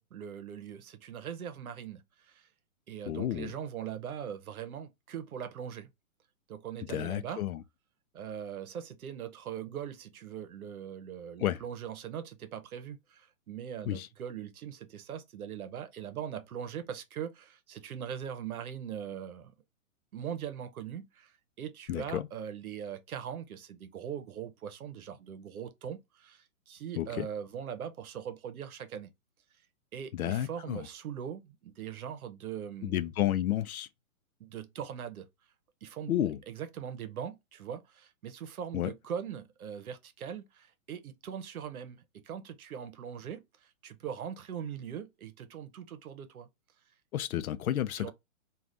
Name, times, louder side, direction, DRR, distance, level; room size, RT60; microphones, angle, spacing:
voice 1, 0.0-2.5 2.9-5.9 6.5-7.4 8.1-19.5 20.1-29.1 29.9-33.1 34.4-35.3 35.8-36.1 36.5-46.5 48.0-48.1, right 8 dB, 90° right, 0.8 m, -41 dB
voice 2, 3.1-3.5 6.9-7.6 11.4-11.6 13.9-14.1 21.9-22.3 27.0-27.3 30.1-30.9 32.8-33.9 36.1-36.4 38.7-38.9 47.1-48.1, left 12 dB, 80° left, 0.5 m, -31 dB
2.5 x 2.4 x 3.2 m
hypercardioid pair, 175°, 42 cm